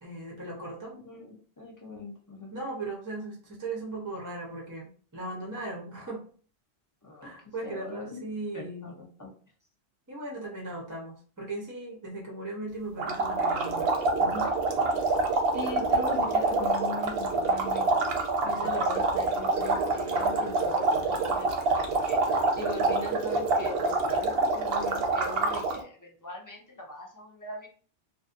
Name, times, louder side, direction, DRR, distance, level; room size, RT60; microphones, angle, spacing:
voice 1, 0.0-0.9 2.5-6.2 7.2-8.9 10.1-13.9 14.2-14.5 18.5-18.7, right 2 dB, 20° right, -3 dB, 0.5 m, -38 dB
voice 2, 0.9-2.5 7.0-7.3 7.6-8.3 8.5-9.3 15.5-17.9 18.4-27.7, left 2 dB, 35° left, -1 dB, 0.3 m, -40 dB
sound 1, 13.0-25.8, right 3 dB, 65° right, 0.7 m, -26 dB
2.5 x 2.5 x 2.4 m, 0.43 s
omnidirectional pair, 1.2 m